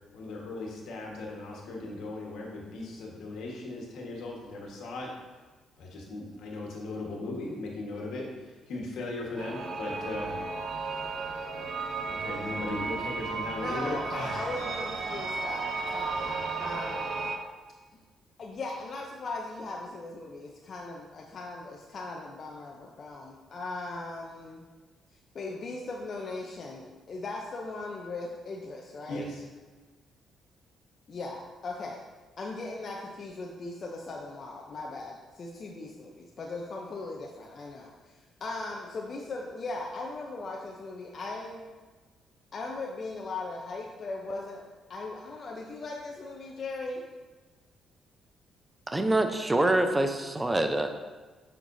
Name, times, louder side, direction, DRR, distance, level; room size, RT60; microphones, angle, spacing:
voice 1, 0.1-5.1 5.8-10.4 12.0-14.6 29.1-29.4, left 2 dB, 80° left, -1 dB, 1.4 m, -37 dB
sound 1, 9.4-17.4, right 4 dB, 60° right, 0.7 m, -34 dB
voice 2, 13.5-17.1 18.4-24.6 25.3-29.3 31.1-32.0 32.4-41.6 42.5-47.0, left 3 dB, 50° left, -1 dB, 0.7 m, -38 dB
voice 3, 48.9-50.9, right 1 dB, 15° right, 6 dB, 0.6 m, -25 dB
7.4 x 5.9 x 2.7 m, 1.3 s
cardioid pair, 90°, 0 cm